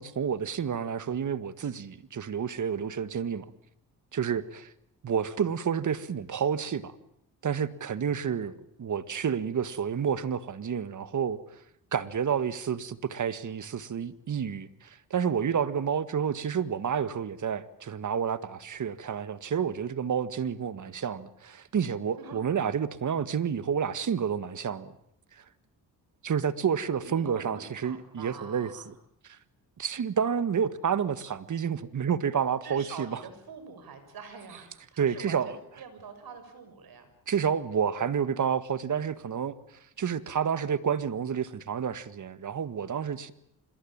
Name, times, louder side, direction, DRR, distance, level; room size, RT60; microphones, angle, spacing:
voice 1, 0.0-3.5 4.1-4.7 5.0-6.9 7.4-8.5 8.8-11.4 11.9-25.0 25.4-25.5 26.2-28.9 29.3-29.4 29.8-33.2 35.0-35.6 37.3-39.5 40.0-43.3, right 7 dB, 50° right, 1.8 m, -29 dB
voice 2, 26.8-28.9 32.6-37.1, right 5 dB, 65° right, 6.7 m, -45 dB
26.0 x 22.0 x 8.9 m
cardioid pair, 80°, 38 cm